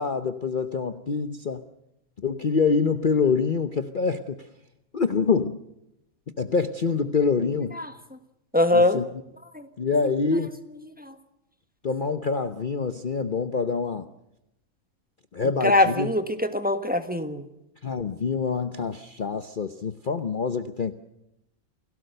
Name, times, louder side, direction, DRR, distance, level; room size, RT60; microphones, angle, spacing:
voice 1, 0.0-1.6 2.2-4.4 4.9-5.6 6.4-7.8 8.7-9.0 9.8-10.6 11.8-14.1 15.3-16.1 17.8-20.9, left 5 dB, 40° left, 9 dB, 0.9 m, -25 dB
voice 2, 8.5-9.0 9.5-9.7 11.0-11.1 15.6-17.5, left 2 dB, 5° right, 8 dB, 1.4 m, -22 dB
29.0 x 17.5 x 6.7 m, 0.86 s
omnidirectional pair, 1.5 m